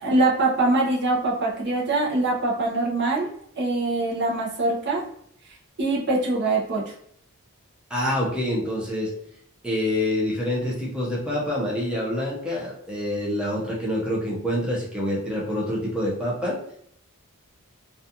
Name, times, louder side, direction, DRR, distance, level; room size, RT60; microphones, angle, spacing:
voice 1, 0.0-3.3 3.6-5.1 5.8-6.8, right 2 dB, 50° right, -3 dB, 0.6 m, -23 dB
voice 2, 7.9-9.1 9.6-16.6, left 1 dB, 5° right, -5 dB, 0.6 m, -26 dB
2.4 x 2.4 x 2.7 m, 0.68 s
head